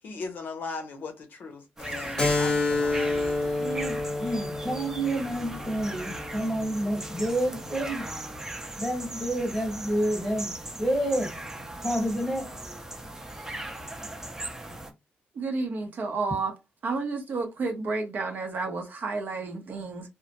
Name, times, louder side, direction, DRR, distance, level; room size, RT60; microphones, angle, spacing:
voice 1, 0.0-3.2, left 4 dB, 60° left, 0.6 m, -38 dB
sound 1, 1.8-14.9, right 1 dB, 15° right, 0.5 m, -38 dB
Keyboard (musical), 2.2-7.3, left 3 dB, 25° left, 0.7 m, -29 dB
voice 2, 3.6-8.0 8.8-11.3 11.8-12.5, right 1 dB, 5° left, 1.1 m, -29 dB
voice 3, 15.4-16.5 16.8-20.0, right 3 dB, 55° right, 0.7 m, -31 dB
2.1 x 2.0 x 2.8 m
cardioid pair, 105°, 4 cm